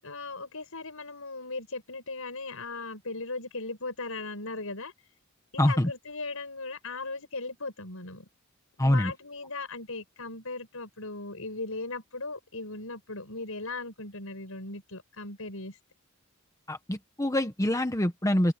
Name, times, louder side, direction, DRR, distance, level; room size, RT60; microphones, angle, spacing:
voice 1, 0.0-4.9 5.5-8.3 8.8-15.8, left 3 dB, 70° left, 7.6 m, -38 dB
voice 2, 5.6-5.9 8.8-9.1 16.7-18.5, left 1 dB, 15° left, 1.1 m, -25 dB
open air
head